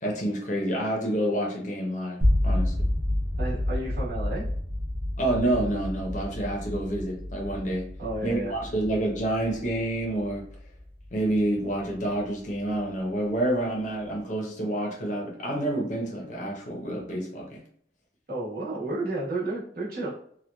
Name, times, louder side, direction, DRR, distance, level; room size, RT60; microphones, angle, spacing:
voice 1, 0.0-2.9 5.2-7.9 8.2-10.4 11.1-17.6, right 1 dB, 45° left, -1 dB, 0.7 m, -28 dB
sound 1, 2.2-12.2, left 1 dB, 30° right, 0.6 m, -30 dB
voice 2, 3.4-4.5 8.0-8.5 18.3-20.1, right 2 dB, 55° right, -6 dB, 1.1 m, -31 dB
2.9 x 2.2 x 2.3 m, 0.63 s
head